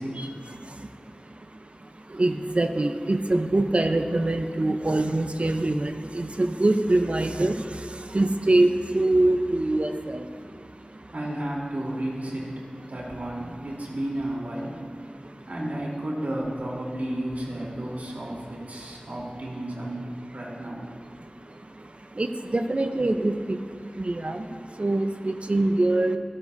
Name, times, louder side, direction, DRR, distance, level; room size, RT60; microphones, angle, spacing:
voice 1, 0.2-11.1 15.1-15.4 21.2-26.2, right 2 dB, 45° right, 6 dB, 0.7 m, -25 dB
voice 2, 11.1-14.8 15.5-20.1 20.3-20.8, right 1 dB, 75° right, -4 dB, 3.5 m, -32 dB
26.0 x 13.0 x 2.7 m, 2.1 s
wide cardioid pair, 55°, 3 cm